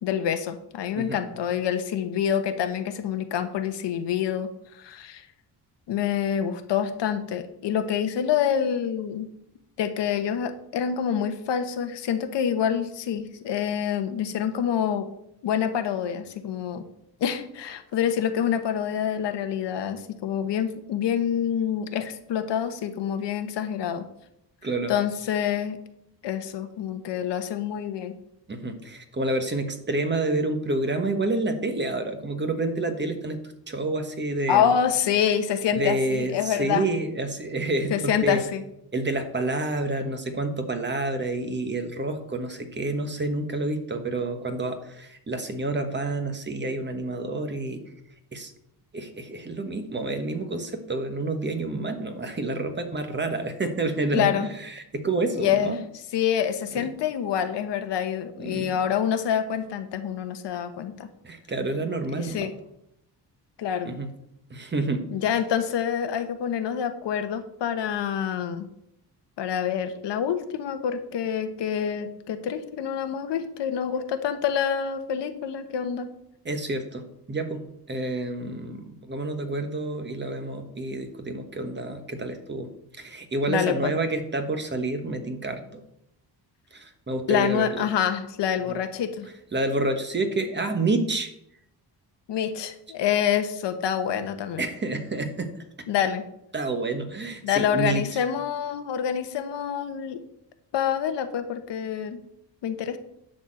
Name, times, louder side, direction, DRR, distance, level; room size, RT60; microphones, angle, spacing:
voice 1, 0.0-4.5 4.8-5.3 5.9-9.3 9.8-15.1 15.4-16.9 17.2-24.0 24.9-25.8 26.2-28.1 34.5-36.8 37.9-38.6 54.1-54.5 55.4-55.7 56.1-61.1 62.1-62.5 63.6-63.9 65.1-68.7 69.4-76.1 83.5-83.9 87.3-89.3 92.3-94.6 95.9-96.2 97.4-100.2 100.7-102.2 102.6-103.0, left 8 dB, 80° left, 8 dB, 1.2 m, -26 dB
voice 2, 24.6-24.9 28.5-33.4 33.7-34.7 35.7-38.4 38.9-47.8 48.3-48.5 48.9-55.8 56.7-56.9 58.4-58.7 61.2-62.5 63.8-64.1 64.5-65.1 76.4-82.7 83.0-85.8 86.7-87.8 88.7-88.8 89.5-91.3 94.6-95.5 96.5-98.0, right 2 dB, 25° right, 7 dB, 1.3 m, -29 dB
10.5 x 4.4 x 7.5 m, 0.77 s
cardioid pair, 125°, 42 cm